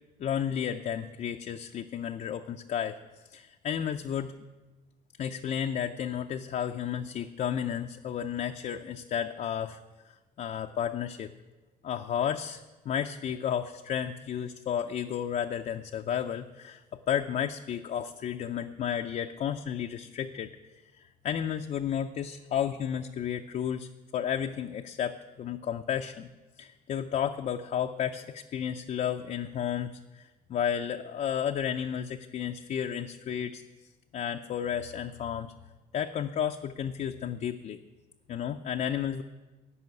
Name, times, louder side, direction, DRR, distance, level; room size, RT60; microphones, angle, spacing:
voice 1, 0.2-3.0 3.3-4.3 5.2-9.8 10.1-11.3 11.8-12.6 12.9-20.5 20.9-26.3 26.6-33.6 34.1-35.5 35.9-37.8 38.3-39.2, left 9 dB, 45° left, 4 dB, 0.6 m, -32 dB
14.0 x 5.6 x 9.4 m, 1.2 s
cardioid pair, 110°, 17 cm